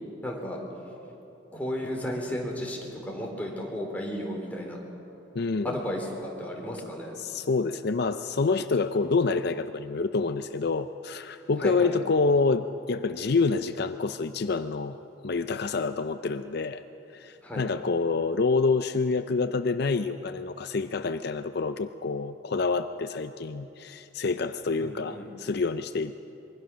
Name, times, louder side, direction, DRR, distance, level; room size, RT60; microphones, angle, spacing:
voice 1, 0.2-0.6 1.5-4.8 5.6-7.1 11.6-11.9 17.4-17.6 24.8-25.2, equal, 10° left, -2 dB, 3.8 m, -33 dB
voice 2, 5.3-5.8 7.2-15.0 15.2-16.8 17.1-26.1, left 4 dB, 60° left, 10 dB, 0.6 m, -27 dB
25.0 x 22.5 x 6.3 m, 2.9 s
head